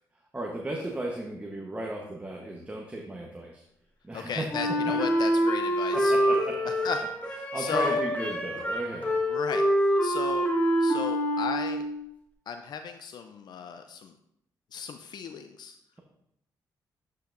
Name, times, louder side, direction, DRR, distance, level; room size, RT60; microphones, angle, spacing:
voice 1, 0.3-3.6 4.0-4.9 5.9-6.6 7.5-9.4, right 1 dB, 15° right, 0 dB, 1.0 m, -35 dB
voice 2, 4.1-6.2 6.7-8.0 9.3-10.5 10.8-11.8 12.5-14.1 14.7-15.8, left 6 dB, 65° left, 8 dB, 0.4 m, -36 dB
Wind instrument woodwind instrument, 4.5-12.1, equal, 20° left, 1.6 m, -26 dB
8.2 x 5.4 x 2.6 m, 0.76 s
supercardioid pair, 65°, 8 cm